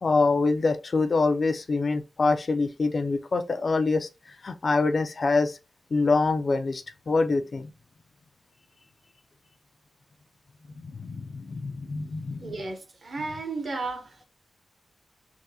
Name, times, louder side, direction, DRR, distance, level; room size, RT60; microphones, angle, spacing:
voice 1, 0.0-4.1 4.4-5.6 5.9-7.7 10.8-12.6, left 3 dB, 45° left, 0.3 m, -25 dB
voice 2, 12.4-14.2, right 3 dB, 60° right, 0.7 m, -34 dB
3.5 x 2.1 x 2.7 m
wide cardioid pair, 95°, 0 cm